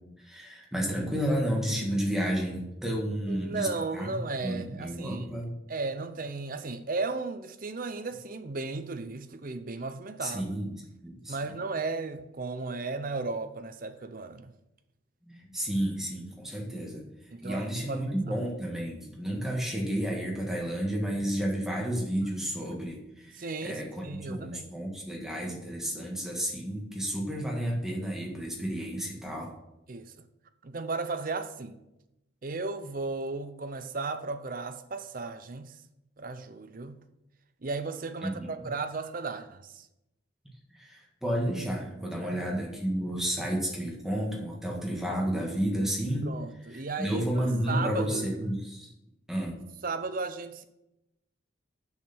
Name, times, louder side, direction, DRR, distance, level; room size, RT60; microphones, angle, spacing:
voice 1, 0.2-4.2 4.4-5.5 10.2-10.7 11.0-11.5 15.2-17.0 17.4-29.5 38.2-38.5 40.7-46.3 46.7-48.9 49.3-49.6, equal, ahead, 1.6 m, -31 dB
voice 2, 3.3-5.3 5.7-10.5 11.3-14.5 17.3-18.0 23.3-24.7 29.9-30.1 30.6-31.7 32.4-35.8 36.2-37.0 37.6-39.9 42.2-42.4 43.9-44.0 46.2-48.2 49.8-50.6, right 3 dB, 45° right, 0.6 m, -35 dB
7.1 x 6.5 x 6.0 m
head